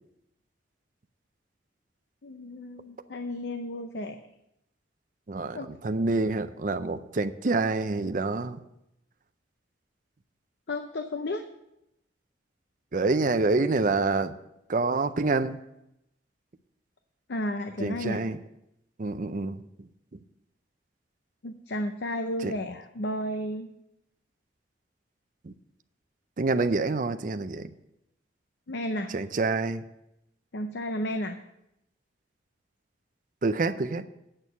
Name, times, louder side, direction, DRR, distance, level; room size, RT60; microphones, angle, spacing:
voice 1, 2.2-4.2 5.5-5.7 10.7-11.5 17.3-18.2 21.4-23.7 28.7-29.1 30.5-31.4, left 1 dB, 70° left, 7 dB, 0.6 m, -32 dB
voice 2, 5.3-8.6 12.9-14.3 14.7-15.6 17.8-18.4 19.0-19.6 22.4-22.5 25.4-25.5 26.4-27.7 29.1-29.8 33.4-34.1, right 3 dB, 45° right, 10 dB, 0.5 m, -27 dB
8.9 x 6.4 x 6.7 m, 0.84 s
head